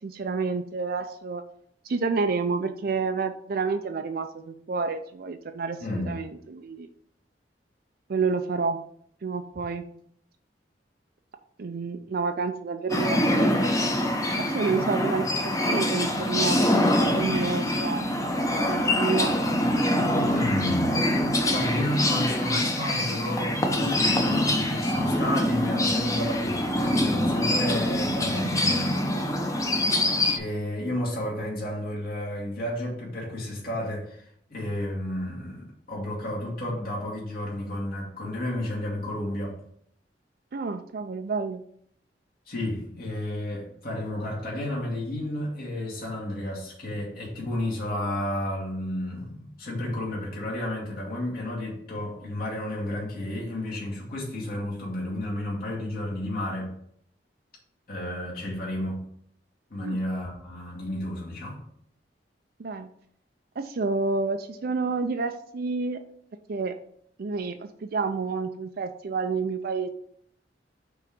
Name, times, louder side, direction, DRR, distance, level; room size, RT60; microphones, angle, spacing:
voice 1, 0.0-1.4 1.8-6.9 8.1-8.8 9.2-9.9 11.6-13.7 14.4-16.6 17.0-18.1 18.7-19.3 29.9-30.1 40.5-41.6 59.8-60.0 62.6-62.9 63.6-66.0 66.5-66.8 67.2-69.9, right 4 dB, 55° right, 0.5 m, -29 dB
voice 2, 5.8-6.1 20.3-20.9 21.5-29.0 30.4-39.6 42.5-56.7 57.9-59.0 59.7-61.6, left 1 dB, 55° left, 2.5 m, -32 dB
sound 1, 12.9-30.4, left 1 dB, 20° left, 0.8 m, -24 dB
5.9 x 3.9 x 6.1 m
head